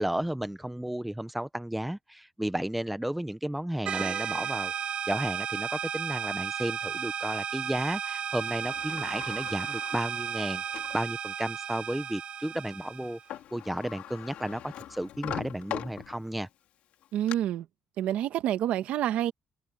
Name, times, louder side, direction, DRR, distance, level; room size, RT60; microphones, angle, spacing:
voice 1, 0.0-4.7 5.1-10.6 10.9-13.2 13.5-16.5, right 1 dB, 5° right, 0.7 m, -33 dB
sound 1, 3.9-13.2, right 8 dB, 50° right, 2.7 m, -34 dB
Sliding door, 8.4-11.0 11.6-11.7 13.0-13.1 13.3-16.5 16.9-17.4, left 12 dB, 75° left, 3.3 m, -41 dB
voice 2, 17.1-17.7 18.0-19.3, right 11 dB, 80° right, 1.2 m, -28 dB
cardioid pair, 165°, 2 cm